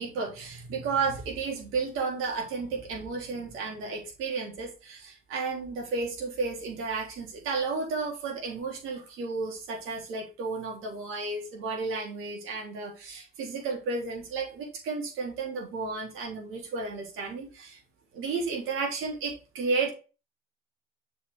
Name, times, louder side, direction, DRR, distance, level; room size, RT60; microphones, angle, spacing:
voice 1, 0.0-17.8 18.1-19.9, right 4 dB, 75° right, 0 dB, 3.3 m, -32 dB
7.2 x 5.1 x 3.7 m, 0.32 s
supercardioid pair, 75°, 21 cm